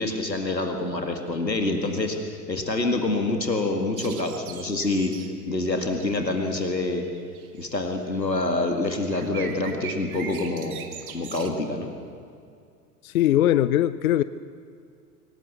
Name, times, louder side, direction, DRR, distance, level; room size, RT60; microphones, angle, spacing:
voice 1, 0.0-5.1 5.5-7.0 7.5-10.8 11.1-11.9, left 2 dB, 85° left, 4 dB, 2.1 m, -26 dB
sound 1, 4.0-7.7 9.1-11.5, right 8 dB, 60° right, 2.2 m, -41 dB
voice 2, 13.0-14.2, left 12 dB, 60° left, 16 dB, 0.7 m, -20 dB
24.0 x 18.5 x 8.1 m, 2.3 s
figure-of-eight pair, 90°, 49 cm